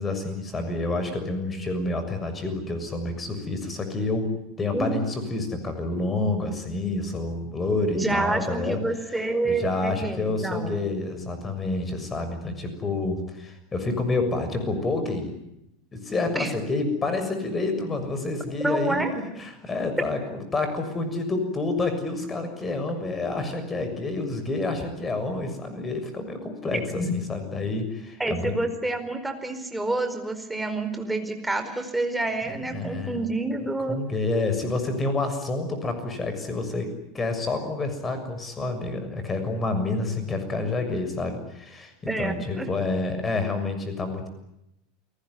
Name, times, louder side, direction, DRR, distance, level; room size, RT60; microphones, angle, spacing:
voice 1, 0.0-4.3 4.6-8.8 9.0-15.3 15.9-28.5 32.7-33.2 33.9-44.3, left 2 dB, 20° left, 8 dB, 6.8 m, -28 dB
voice 2, 7.9-10.7 16.3-16.5 18.6-19.1 26.9-27.2 28.2-34.0 42.1-42.7, right 2 dB, 5° right, 6 dB, 4.7 m, -28 dB
29.5 x 19.5 x 9.7 m, 0.84 s
figure-of-eight pair, 80°, 0 cm